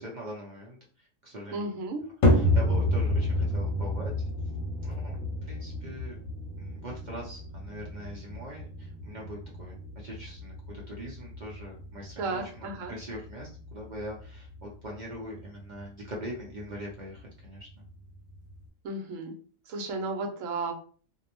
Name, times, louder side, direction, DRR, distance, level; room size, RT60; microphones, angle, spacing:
voice 1, 0.0-1.7 2.3-4.1 4.8-6.2 6.6-17.8, equal, 50° right, -3 dB, 0.5 m, -42 dB
voice 2, 1.5-2.1 5.2-5.3 12.2-12.9 18.8-19.3 19.7-20.7, right 3 dB, 75° right, 3 dB, 1.0 m, -33 dB
sound 1, 2.2-18.7, left 1 dB, 80° left, 1.1 m, -31 dB
2.5 x 2.0 x 2.9 m, 0.41 s
omnidirectional pair, 1.4 m